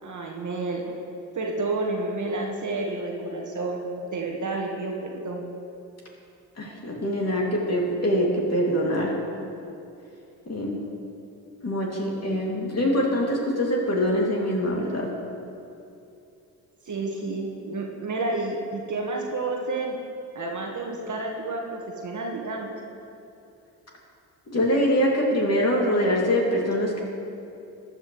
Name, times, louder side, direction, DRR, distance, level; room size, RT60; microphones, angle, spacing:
voice 1, 0.0-0.9 1.3-3.9 4.1-5.4 16.9-19.9 20.3-22.7, right 2 dB, 35° right, 0 dB, 1.5 m, -30 dB
voice 2, 6.6-9.1 10.5-10.8 11.6-15.1 24.5-27.0, equal, 30° left, -2 dB, 2.5 m, -24 dB
14.0 x 9.6 x 3.2 m, 2.6 s
hypercardioid pair, 45°, 49 cm